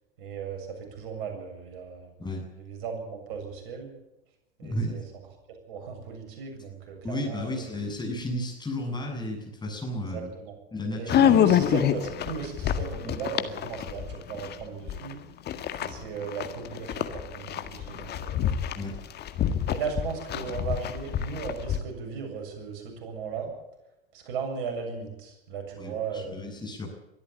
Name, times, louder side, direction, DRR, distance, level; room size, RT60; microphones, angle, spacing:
voice 1, 0.2-2.3 2.6-3.9 4.6-5.0 5.7-7.7 10.1-10.5 11.0-15.2 15.8-18.5 19.7-23.5 24.1-26.5, right 6 dB, 60° right, 4 dB, 7.2 m, -36 dB
voice 2, 4.6-5.0 7.0-10.3 10.7-11.7 13.0-13.2 18.8-19.0 25.8-26.9, left 1 dB, 15° left, 1 dB, 7.4 m, -33 dB
sound 1, 11.1-15.1 15.5-21.8, left 10 dB, 35° left, 1.8 m, -26 dB
23.5 x 13.5 x 8.8 m, 0.93 s
figure-of-eight pair, 85°, 30 cm